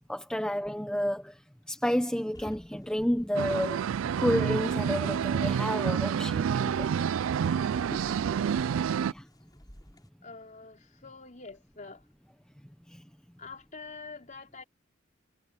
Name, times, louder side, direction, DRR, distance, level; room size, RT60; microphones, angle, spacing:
voice 1, 0.1-1.3 1.7-3.8 4.2-6.9 9.0-9.2 12.9-13.0, equal, 5° left, 1.0 m, -30 dB
sound 1, 2.3-10.1, equal, 20° left, 7.2 m, -50 dB
sound 2, 3.3-9.1, right 7 dB, 85° right, 0.3 m, -28 dB
voice 2, 8.0-8.7 10.2-12.0 13.4-14.6, left 4 dB, 40° left, 4.3 m, -46 dB
head